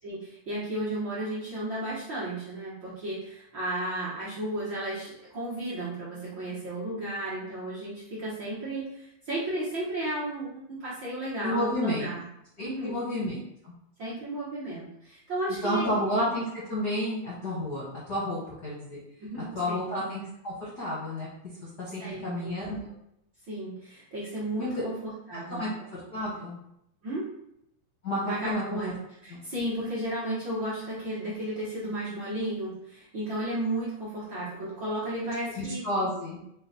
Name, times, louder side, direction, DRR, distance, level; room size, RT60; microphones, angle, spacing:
voice 1, 0.0-12.2 12.6-13.0 14.0-16.0 19.2-19.8 22.0-22.6 23.5-25.7 27.0-27.3 28.2-29.0 29.2-35.8, right 1 dB, 55° right, -10 dB, 1.3 m, -34 dB
voice 2, 11.4-12.1 12.6-13.4 13.6-13.7 15.6-19.0 19.5-21.3 21.8-22.9 24.6-24.9 25.5-26.6 28.0-28.8 29.3-29.4 35.6-36.4, left 1 dB, 70° left, -8 dB, 0.9 m, -31 dB
5.0 x 2.4 x 4.0 m, 0.80 s
omnidirectional pair, 3.6 m